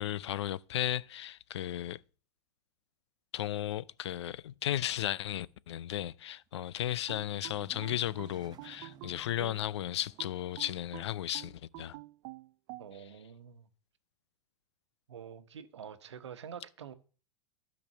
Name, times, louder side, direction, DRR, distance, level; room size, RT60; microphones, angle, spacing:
voice 1, 0.0-2.0 3.3-12.0, left 12 dB, 80° left, 0.5 m, -35 dB
sound 1, 6.4-11.2, right 9 dB, 30° right, 0.8 m, -58 dB
sound 2, 7.1-9.7 10.2-12.9, right 18 dB, 55° right, 0.4 m, -48 dB
voice 2, 12.8-13.7 15.1-16.9, right 8 dB, 85° right, 1.1 m, -47 dB
12.5 x 5.2 x 6.7 m
hypercardioid pair, 100°, 14 cm